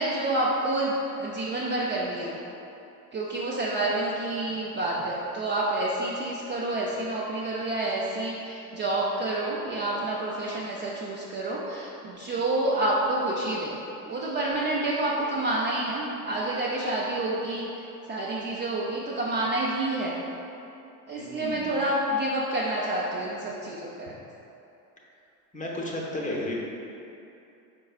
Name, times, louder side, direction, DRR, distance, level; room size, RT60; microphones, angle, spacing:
voice 1, 0.0-2.4 3.1-13.8 14.0-17.7 18.1-20.2 21.1-24.1, right 2 dB, 25° right, -6 dB, 0.4 m, -28 dB
voice 2, 21.2-21.8 25.5-26.5, left 1 dB, 15° left, -3 dB, 0.7 m, -33 dB
4.7 x 4.5 x 2.4 m, 2.8 s
hypercardioid pair, 80°, 48 cm